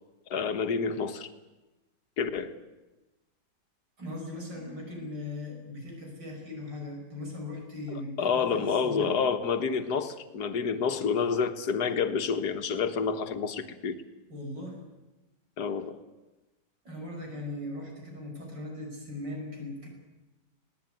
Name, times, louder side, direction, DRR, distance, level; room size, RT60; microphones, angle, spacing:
voice 1, 0.3-1.3 2.2-2.5 8.2-14.0 15.6-16.0, left 6 dB, 65° left, 1.8 m, -28 dB
voice 2, 4.0-9.1 14.3-14.8 16.8-19.9, left 2 dB, 85° right, 6.5 m, -39 dB
20.0 x 18.5 x 9.2 m
omnidirectional pair, 1.9 m